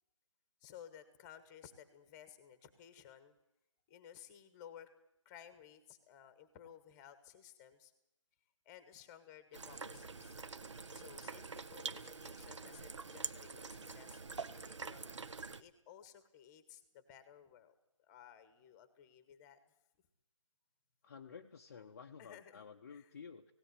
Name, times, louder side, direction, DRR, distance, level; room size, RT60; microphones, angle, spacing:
voice 1, 0.6-3.3 3.9-4.9 5.2-7.9 8.6-10.4 10.9-15.1 15.6-19.6 22.2-23.1, left 9 dB, 10° left, 12 dB, 1.2 m, -57 dB
sound 1, 9.5-15.6, right 4 dB, 60° right, 1.0 m, -46 dB
voice 2, 21.0-23.5, left 6 dB, 30° left, 3 dB, 0.7 m, -52 dB
17.5 x 16.5 x 9.5 m, 0.84 s
figure-of-eight pair, 155°, 17 cm